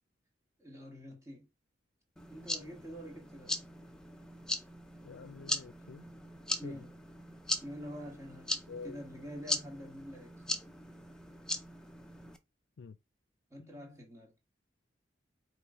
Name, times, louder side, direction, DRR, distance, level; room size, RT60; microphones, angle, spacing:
voice 1, 0.6-1.5 2.3-3.5 6.6-6.9 7.6-10.3 13.5-14.3, equal, 15° right, 1.4 m, -46 dB
sound 1, 2.2-12.4, left 1 dB, 5° left, 0.4 m, -40 dB
voice 2, 5.0-6.0 6.6-6.8 8.7-9.0 12.8-13.0 13.6-14.0, left 4 dB, 85° left, 0.4 m, -48 dB
4.7 x 3.0 x 3.6 m
head